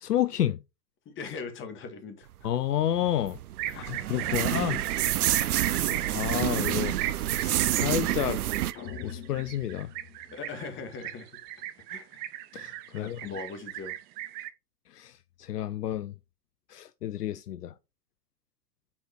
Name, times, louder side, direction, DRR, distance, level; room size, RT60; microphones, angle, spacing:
voice 1, 0.0-0.6 2.4-3.4 3.8-4.8 5.7-5.9 6.1-7.0 7.3-8.4 9.0-9.9 12.5-13.3 14.9-15.1 15.4-16.1 16.7-17.7, left 11 dB, 75° left, 0.7 m, -30 dB
voice 2, 1.1-2.5 3.7-4.8 5.2-5.3 5.9-6.3 10.3-11.3 11.9-12.2 12.9-14.0, left 4 dB, 25° left, 1.9 m, -41 dB
sound 1, 2.8-8.7, right 13 dB, 65° right, 0.7 m, -28 dB
sound 2, 3.6-14.5, right 14 dB, 20° right, 0.5 m, -36 dB
sound 3, 8.7-11.0, left 7 dB, 55° left, 2.4 m, -44 dB
7.3 x 4.5 x 4.3 m
figure-of-eight pair, 105°, 48 cm